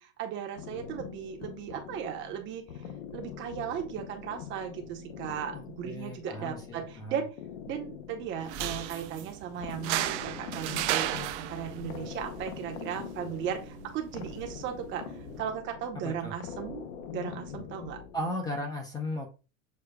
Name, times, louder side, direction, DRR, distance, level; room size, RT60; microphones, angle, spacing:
voice 1, 0.0-2.8 3.1-7.3 7.7-11.1 11.4-16.8 17.1-18.0, right 8 dB, 30° right, 4 dB, 0.7 m, -36 dB
sound 1, 0.6-18.7, left 8 dB, 80° left, 0.7 m, -44 dB
voice 2, 5.5-7.2 16.0-16.3 18.1-19.3, left 1 dB, 10° left, 2 dB, 0.5 m, -36 dB
sound 2, 8.4-15.4, right 12 dB, 60° right, 0.5 m, -36 dB
6.5 x 2.2 x 2.2 m, 0.32 s
supercardioid pair, 155°, 39 cm